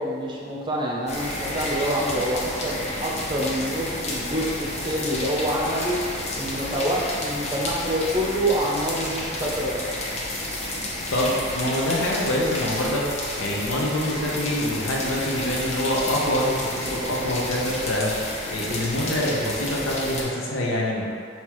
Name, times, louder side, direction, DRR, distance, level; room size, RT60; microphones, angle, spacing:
voice 1, 0.0-6.0 6.4-9.9, right 1 dB, 25° right, -3 dB, 0.6 m, -26 dB
sound 1, 1.1-20.2, left 1 dB, 35° left, 0.6 m, -31 dB
voice 2, 11.1-21.1, left 1 dB, 90° left, -3 dB, 0.8 m, -25 dB
5.7 x 2.8 x 3.0 m, 2.3 s
head